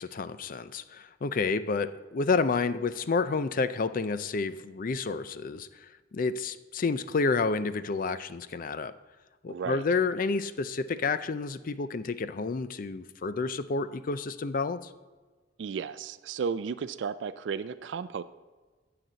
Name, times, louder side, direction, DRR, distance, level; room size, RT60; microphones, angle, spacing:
voice 1, 0.0-8.9 9.4-14.9, left 4 dB, 45° left, 13 dB, 0.4 m, -30 dB
voice 2, 9.5-9.8 15.6-18.2, right 6 dB, 70° right, 12 dB, 0.4 m, -34 dB
15.5 x 5.9 x 4.0 m, 1.3 s
head